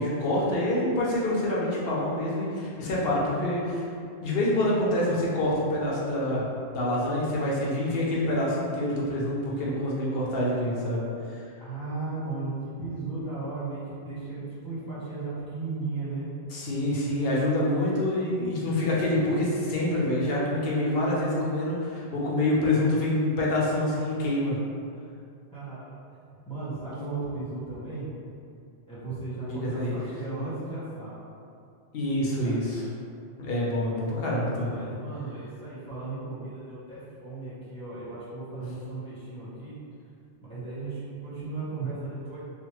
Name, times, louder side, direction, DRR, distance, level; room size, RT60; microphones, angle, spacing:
voice 1, 0.0-3.9 4.2-6.4 6.7-11.0 11.3-11.4 16.5-24.6 29.5-30.0 31.9-32.8 33.4-34.8, left 1 dB, 65° left, -5 dB, 0.9 m, -26 dB
voice 2, 11.6-16.3 25.5-25.9 26.2-28.1 28.9-31.2 32.3-32.6 34.5-39.7 40.4-42.4, right 3 dB, 5° left, -13 dB, 0.9 m, -36 dB
3.3 x 2.1 x 3.0 m, 2.4 s
omnidirectional pair, 1.1 m